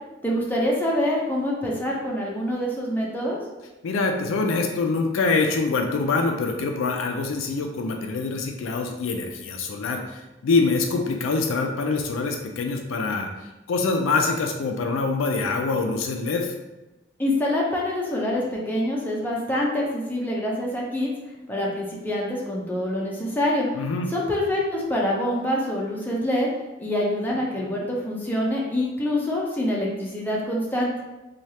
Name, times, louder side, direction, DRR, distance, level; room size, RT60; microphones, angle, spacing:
voice 1, 0.2-3.4 17.2-21.1 21.5-23.7 24.1-26.5 26.8-30.9, left 1 dB, 10° left, -4 dB, 0.5 m, -25 dB
voice 2, 3.8-16.5 23.7-24.1 27.6-27.7, left 3 dB, 70° left, 3 dB, 0.4 m, -25 dB
3.2 x 2.3 x 2.7 m, 1.1 s
head